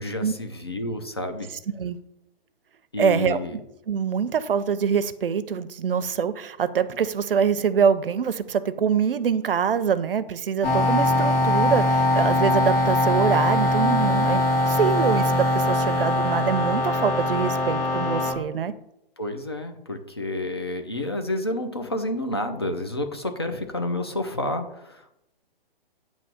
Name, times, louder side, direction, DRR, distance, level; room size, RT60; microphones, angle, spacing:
voice 1, 0.0-1.5 2.9-3.6 19.2-25.2, left 1 dB, 25° left, 0.4 m, -30 dB
voice 2, 3.0-3.4 3.9-18.7, right 7 dB, 70° right, 0.6 m, -24 dB
sound 1, 10.6-18.3, left 1 dB, 65° left, 2.6 m, -22 dB
8.9 x 3.0 x 5.8 m
hypercardioid pair, 180°, 30 cm